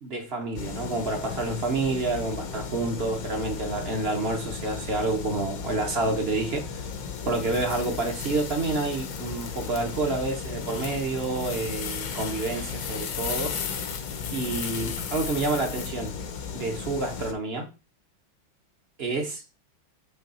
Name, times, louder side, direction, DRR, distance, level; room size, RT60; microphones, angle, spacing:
voice 1, 0.0-6.8 7.2-13.6 14.3-16.2 16.5-17.7 19.0-19.4, right 3 dB, 45° right, 0.8 m, -29 dB
sound 1, 0.6-17.3, left 6 dB, 60° left, 1.0 m, -36 dB
sound 2, 6.9-16.1, left 7 dB, 80° left, 1.7 m, -37 dB
8.2 x 3.2 x 4.2 m
omnidirectional pair, 2.2 m